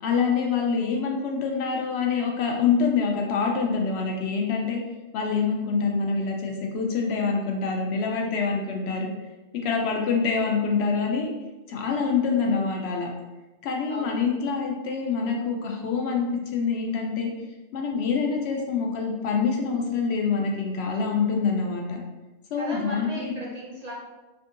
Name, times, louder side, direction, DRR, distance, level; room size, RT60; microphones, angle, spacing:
voice 1, 0.0-4.8 5.1-9.1 9.6-11.3 11.7-13.1 13.6-17.3 17.7-22.0 22.5-23.4, left 5 dB, 70° left, 1 dB, 0.8 m, -25 dB
voice 2, 13.9-14.3 22.6-23.9, right 1 dB, 45° right, -6 dB, 0.6 m, -36 dB
3.6 x 2.6 x 2.4 m, 1.1 s
omnidirectional pair, 1.2 m